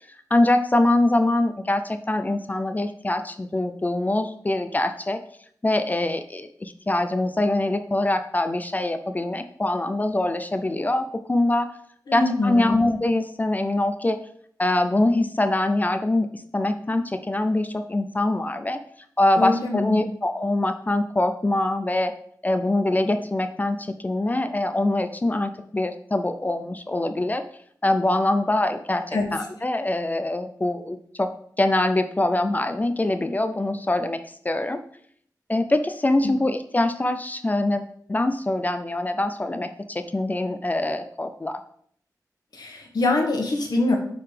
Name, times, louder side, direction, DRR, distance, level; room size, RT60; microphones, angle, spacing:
voice 1, 0.3-5.2 5.6-11.7 12.1-14.2 14.6-18.8 19.2-22.1 22.4-27.4 27.8-31.3 31.6-34.8 35.5-41.6, left 2 dB, 25° left, 9 dB, 0.4 m, -24 dB
voice 2, 12.1-12.8 19.4-20.0 29.1-29.3 36.2-36.3 42.5-44.0, left 2 dB, 75° left, 2 dB, 1.4 m, -24 dB
9.8 x 3.9 x 3.3 m, 0.64 s
wide cardioid pair, 115°, 7 cm